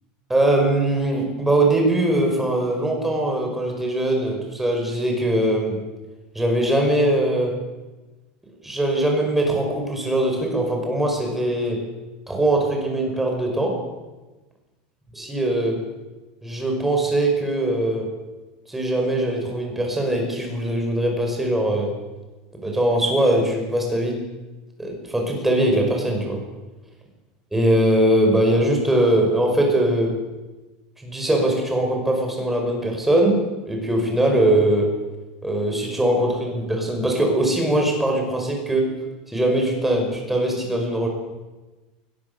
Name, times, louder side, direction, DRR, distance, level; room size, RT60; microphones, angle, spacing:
voice 1, 0.3-5.8 6.3-7.6 8.6-11.8 12.3-13.8 15.1-15.8 16.4-18.1 18.7-22.0 22.6-24.2 24.8-26.4 27.5-30.2 31.0-35.0 35.4-38.9 39.3-41.1, right 1 dB, 5° right, 1 dB, 5.2 m, -21 dB
21.5 x 19.0 x 6.9 m, 1.2 s
supercardioid pair, 165°, 4 cm